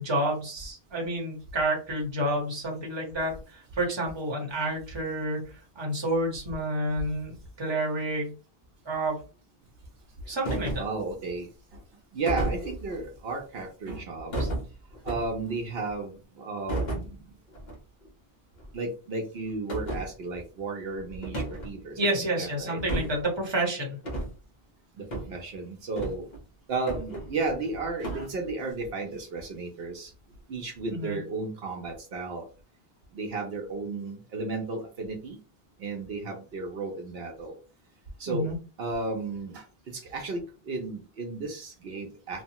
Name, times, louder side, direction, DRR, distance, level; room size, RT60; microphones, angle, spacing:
voice 1, 0.0-8.3 8.8-9.2 10.3-10.8 22.0-24.0 30.9-31.2 38.3-38.5, right 1 dB, 30° right, -1 dB, 0.9 m, -29 dB
sound 1, 10.4-11.0 12.3-13.0 14.3-15.5 16.7-17.1 17.5-17.8 18.0-18.1 18.6-18.7 19.7-20.1 21.2-21.7 22.8-23.2 24.0-24.3 25.1-25.3 25.9-26.4 26.9-27.6 28.0-28.3, right 1 dB, 50° left, 1.0 m, -32 dB
voice 2, 10.8-11.8 12.1-14.5 15.0-17.3 18.7-22.8 25.0-26.3 26.7-30.1 30.5-32.5 33.1-35.4 35.8-37.6 38.2-38.5 38.8-42.4, right 3 dB, 75° right, 2 dB, 0.9 m, -34 dB
2.9 x 2.1 x 2.8 m, 0.34 s
omnidirectional pair, 1.0 m